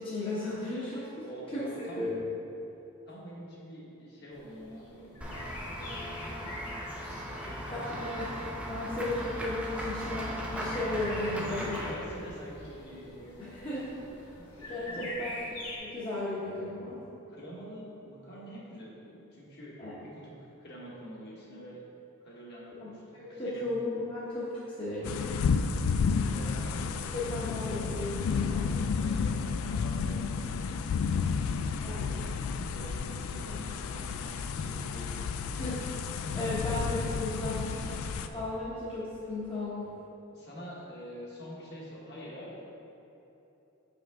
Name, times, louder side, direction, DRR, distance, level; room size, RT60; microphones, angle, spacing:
voice 1, 0.0-2.2 7.7-8.2 8.6-11.8 13.4-13.9 14.7-15.4 15.8-17.0 19.8-19.9 22.8-25.4 27.1-28.7 31.8-32.0 33.5-33.7 35.6-35.9 36.3-40.0, left 2 dB, 25° left, -9 dB, 0.9 m, -35 dB
voice 2, 1.2-2.1 3.1-8.2 11.3-13.7 14.4-15.1 17.3-21.8 22.2-23.7 26.3-27.8 28.6-31.6 31.9-32.2 32.7-35.4 40.3-42.6, equal, 50° left, -5 dB, 1.3 m, -46 dB
sound 1, 4.3-15.8, left 1 dB, 85° left, 1.1 m, -46 dB
Run / Walk footsteps / Bell, 5.2-11.9, equal, 5° right, 0.5 m, -38 dB
sound 2, 25.0-38.3, left 5 dB, 70° left, 0.3 m, -31 dB
6.3 x 5.2 x 3.6 m, 3.0 s
head